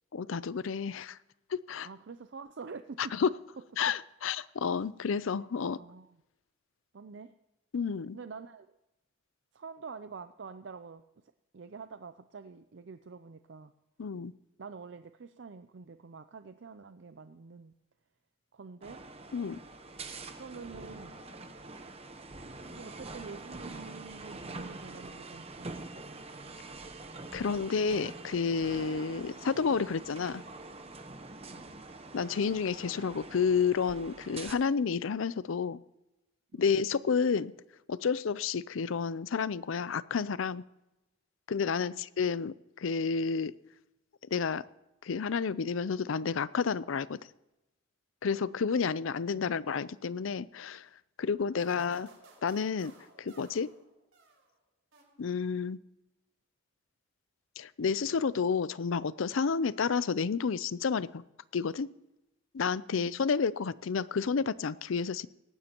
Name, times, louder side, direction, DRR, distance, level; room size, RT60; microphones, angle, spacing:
voice 1, 0.1-1.2 1.5-1.9 3.0-3.3 3.8-5.8 7.7-8.2 14.0-14.3 19.3-19.6 27.3-30.4 32.1-35.8 36.6-37.5 37.9-40.6 41.5-43.5 44.3-44.6 45.0-47.2 48.2-50.9 51.2-52.1 52.4-52.9 53.2-53.7 55.2-55.8 57.6-61.2 61.5-61.9 62.5-65.3, left 5 dB, 80° left, 18 dB, 0.5 m, -30 dB
voice 2, 1.8-3.1 3.9-4.0 5.8-6.2 6.9-7.3 8.1-8.7 9.5-11.0 11.5-13.7 14.6-17.7 18.5-19.0 20.4-21.2 22.7-25.8 31.5-31.8 36.5-36.6 41.8-42.0 49.3-49.7 62.9-63.2, right 5 dB, 60° right, 10 dB, 0.5 m, -47 dB
sound 1, 18.8-34.5, right 3 dB, 30° right, 1.0 m, -45 dB
sound 2, 51.6-54.5 54.9-55.6, right 3 dB, 90° right, 4.0 m, -58 dB
18.5 x 15.0 x 3.0 m, 0.93 s
head